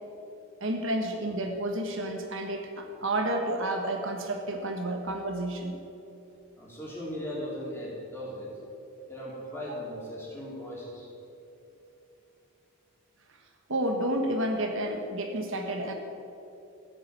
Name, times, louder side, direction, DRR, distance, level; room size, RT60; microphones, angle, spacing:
voice 1, 0.6-5.8 13.7-15.9, right 1 dB, 60° right, 3 dB, 1.4 m, -30 dB
voice 2, 6.6-8.5 9.1-11.1, equal, 10° left, -6 dB, 3.9 m, -38 dB
15.0 x 8.6 x 8.6 m, 2.9 s
head